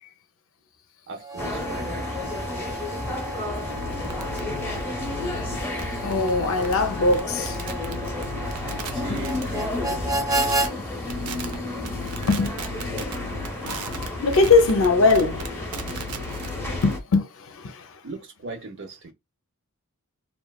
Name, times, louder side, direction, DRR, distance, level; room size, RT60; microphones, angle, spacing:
voice 1, 1.1-2.0 8.9-9.8 18.0-19.1, right 3 dB, 55° right, 0.7 m, -38 dB
Harmonica, 1.2-10.7, right 1 dB, 15° right, 0.3 m, -32 dB
sound 1, 1.4-17.0, left 2 dB, 10° left, 0.7 m, -32 dB
sound 2, 3.7-10.0 10.3-10.7 11.1-11.6 11.8-17.0, equal, 90° right, 0.5 m, -36 dB
voice 2, 5.7-7.6 8.7-8.8 9.1-9.2 10.8-11.0 11.3-12.5 12.9-15.8 16.8-18.0, left 3 dB, 65° left, 0.5 m, -23 dB
3.0 x 2.2 x 2.3 m
head